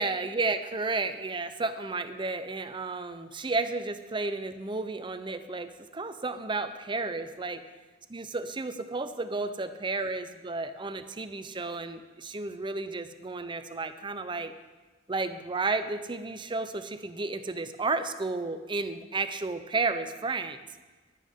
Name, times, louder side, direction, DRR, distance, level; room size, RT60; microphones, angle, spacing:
voice 1, 0.0-7.6 8.1-14.5 15.1-20.6, right 3 dB, 25° right, 10 dB, 0.7 m, -32 dB
14.5 x 12.0 x 3.7 m, 1.3 s
head